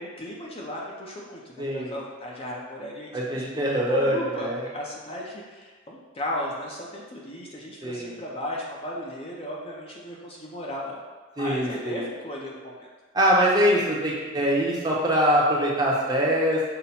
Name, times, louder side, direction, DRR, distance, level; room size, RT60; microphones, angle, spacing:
voice 1, 0.0-11.0 11.4-12.9, left 1 dB, 30° left, -3 dB, 0.6 m, -36 dB
voice 2, 1.6-2.0 3.1-4.7 7.8-8.2 11.4-12.0 13.1-16.7, equal, 20° right, -4 dB, 0.7 m, -23 dB
5.6 x 2.1 x 4.1 m, 1.3 s
head